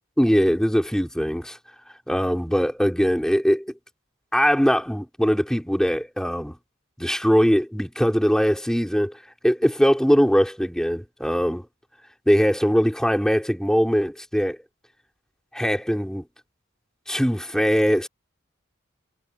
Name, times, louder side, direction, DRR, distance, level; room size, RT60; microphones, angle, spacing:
voice 1, 0.2-1.6 2.1-3.7 4.3-6.6 7.0-9.1 9.4-11.6 12.3-14.6 15.5-16.3 17.1-18.1, equal, 5° left, 4.1 m, -21 dB
head